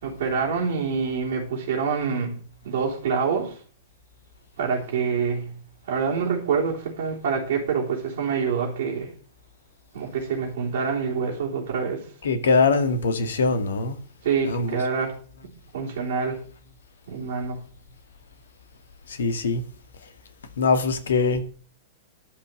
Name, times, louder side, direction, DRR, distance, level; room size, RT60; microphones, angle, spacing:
voice 1, 0.0-2.4 2.6-3.6 4.6-5.5 5.9-9.1 9.9-12.0 14.2-15.2 15.7-16.4 17.1-17.6, right 5 dB, 55° right, 3.6 m, -26 dB
voice 2, 12.2-14.0 14.4-14.8 19.2-19.6 20.6-21.4, left 4 dB, 65° left, 2.0 m, -22 dB
13.0 x 5.8 x 7.8 m
figure-of-eight pair, 100°, 0 cm